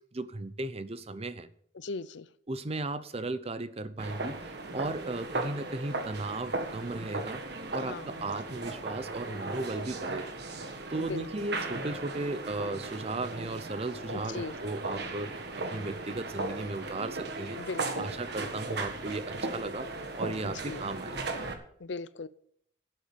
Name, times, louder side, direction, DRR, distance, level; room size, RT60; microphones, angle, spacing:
voice 1, 0.1-1.5 2.5-7.4 7.7-10.3 10.9-17.6 18.0-19.9 20.1-21.2, right 2 dB, 35° right, 13 dB, 0.7 m, -36 dB
voice 2, 1.7-2.3 7.8-8.4 11.1-11.3 14.3-14.6 17.6-18.1 20.6-20.8 21.8-22.3, left 4 dB, 75° left, 16 dB, 0.6 m, -38 dB
sound 1, 4.0-21.5, right 2 dB, 60° right, 1.6 m, -37 dB
11.5 x 7.7 x 6.9 m, 0.67 s
head